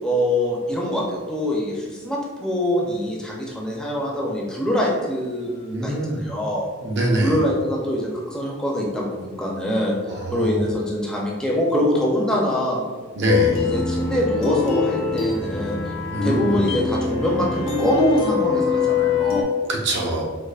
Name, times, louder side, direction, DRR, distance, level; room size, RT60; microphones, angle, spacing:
voice 1, 0.0-6.7 7.2-9.9 10.3-12.8 13.5-15.8 16.2-19.5, left 1 dB, 5° left, -4 dB, 0.5 m, -24 dB
voice 2, 5.7-6.2 6.8-7.4 10.1-10.6 13.2-13.6 16.1-16.6 19.7-20.2, right 1 dB, 65° right, -1 dB, 0.6 m, -23 dB
sound 1, 13.3-19.4, left 5 dB, 70° left, 0.6 m, -23 dB
4.6 x 2.4 x 2.4 m, 1.4 s
head